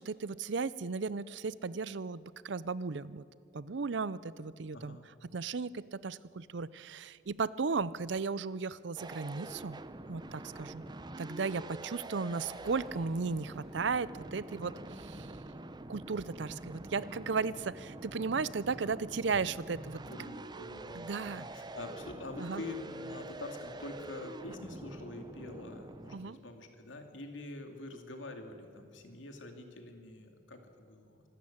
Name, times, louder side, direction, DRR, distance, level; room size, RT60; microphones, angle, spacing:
voice 1, 0.0-3.2 3.5-5.0 5.2-9.8 10.1-10.9 11.2-15.3 15.9-20.0 20.9-21.5 22.4-22.6 26.1-26.4, right 4 dB, 65° right, 18 dB, 0.6 m, -35 dB
voice 2, 4.7-5.1 18.8-18.9 20.1-31.2, left 2 dB, 85° left, 5 dB, 2.6 m, -45 dB
sound 1, 9.0-26.3, right 2 dB, 25° right, 0.7 m, -46 dB
Car passing by, 9.8-25.8, equal, ahead, 3.9 m, -65 dB
25.5 x 13.0 x 8.7 m, 2.4 s
head